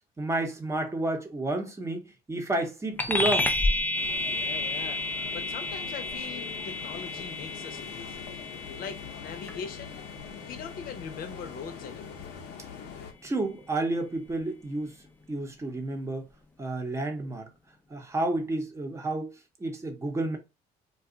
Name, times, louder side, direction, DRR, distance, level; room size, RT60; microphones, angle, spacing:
voice 1, 0.2-3.5 13.2-14.9 15.3-16.3 16.6-17.5 17.9-19.3 19.6-20.4, right 2 dB, 15° right, 0.8 m, -30 dB
sound 1, 3.0-12.8, left 2 dB, 10° left, 0.4 m, -32 dB
sound 2, 3.9-13.1, left 7 dB, 90° left, 0.7 m, -43 dB
voice 2, 4.3-5.0 5.3-8.4 8.8-12.4, left 6 dB, 60° left, 0.7 m, -42 dB
2.5 x 2.3 x 3.7 m
cardioid pair, 110°, 17 cm